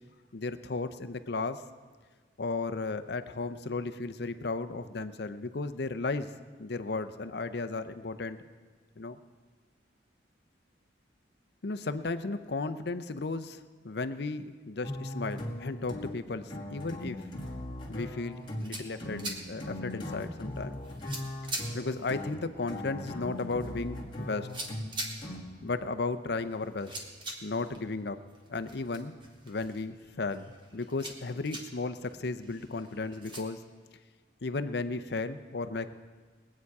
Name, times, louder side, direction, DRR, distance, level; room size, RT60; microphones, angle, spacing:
voice 1, 0.3-1.6 2.4-6.3 6.6-8.4 9.0-9.2 11.6-17.2 17.9-20.8 21.7-24.5 25.6-26.9 27.4-28.2 28.5-29.1 29.4-33.6 34.4-35.9, left 3 dB, 60° left, 10 dB, 0.6 m, -35 dB
sound 1, 14.8-25.7, left 1 dB, 25° left, 1.7 m, -39 dB
sound 2, 18.3-33.4, right 1 dB, 25° right, 1.5 m, -45 dB
21.5 x 8.5 x 4.8 m, 1.4 s
head